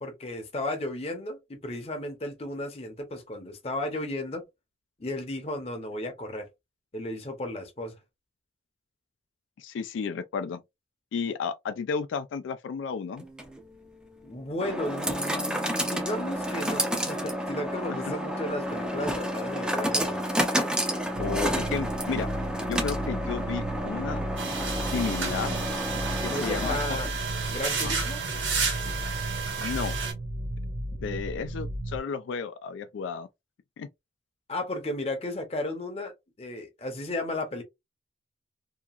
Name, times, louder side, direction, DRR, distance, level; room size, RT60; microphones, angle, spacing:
voice 1, 0.0-4.4 5.0-6.5 6.9-8.0 14.2-20.2 26.2-27.1 27.5-28.2 34.5-37.6, left 1 dB, 30° left, 0.7 m, -34 dB
voice 2, 9.6-10.6 11.1-13.2 21.2-22.3 22.7-24.3 24.8-25.6 26.2-27.0 27.8-28.0 29.6-29.9 31.0-33.3 33.8-33.9, left 6 dB, 85° left, 0.3 m, -33 dB
sound 1, 13.2-27.2, equal, 5° right, 0.4 m, -30 dB
sound 2, 21.1-32.0, right 1 dB, 55° right, 0.6 m, -35 dB
sound 3, 24.4-30.1, right 5 dB, 90° right, 1.3 m, -32 dB
2.8 x 2.4 x 2.3 m
head